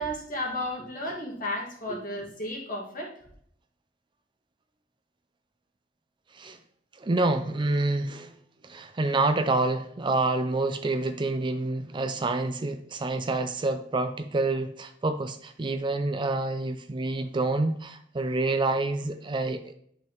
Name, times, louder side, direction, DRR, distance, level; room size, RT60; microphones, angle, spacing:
voice 1, 0.0-3.1, left 1 dB, 45° left, -1 dB, 2.0 m, -33 dB
voice 2, 7.0-8.3 8.6-19.7, right 2 dB, 25° right, 8 dB, 0.4 m, -27 dB
8.9 x 5.5 x 3.0 m, 0.67 s
head